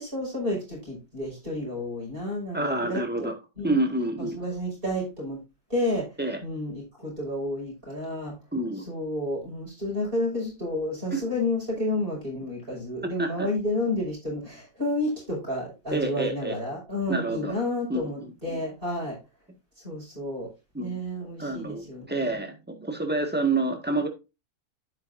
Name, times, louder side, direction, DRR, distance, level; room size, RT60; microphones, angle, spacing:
voice 1, 0.0-3.3 3.6-3.8 4.2-5.4 5.7-6.1 6.4-8.4 8.9-19.2 19.8-20.5 20.8-22.4, left 1 dB, 35° right, -3 dB, 6.2 m, -31 dB
voice 2, 2.5-3.3 3.6-4.4 6.2-6.4 8.5-8.8 11.1-11.2 13.2-13.5 15.9-16.5 17.1-17.5 17.9-18.1 18.5-18.6 20.7-21.0 21.4-24.1, right 2 dB, 5° right, 4 dB, 1.7 m, -28 dB
10.5 x 9.0 x 2.6 m, 0.26 s
omnidirectional pair, 1.6 m